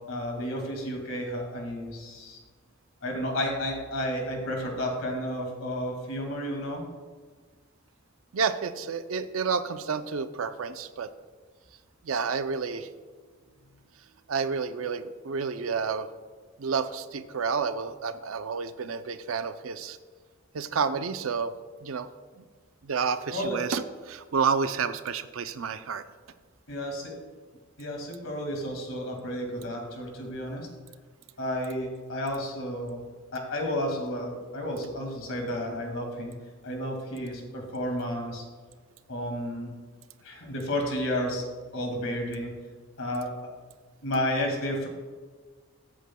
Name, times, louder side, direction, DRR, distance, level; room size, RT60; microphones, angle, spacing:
voice 1, 0.1-2.4 3.0-6.8 23.3-23.6 26.7-27.1 27.8-30.7 31.4-33.0 33.3-36.3 36.6-38.4 39.1-39.7 40.2-41.4 41.7-42.5 43.0-43.3 44.0-44.9, equal, 65° left, 2 dB, 2.1 m, -32 dB
voice 2, 8.3-11.1 12.0-12.9 14.3-16.1 16.6-20.0 20.5-21.5 21.8-22.1 22.4-22.5 22.8-26.0, right 5 dB, 70° right, 11 dB, 0.5 m, -30 dB
14.0 x 8.2 x 2.3 m, 1.5 s
head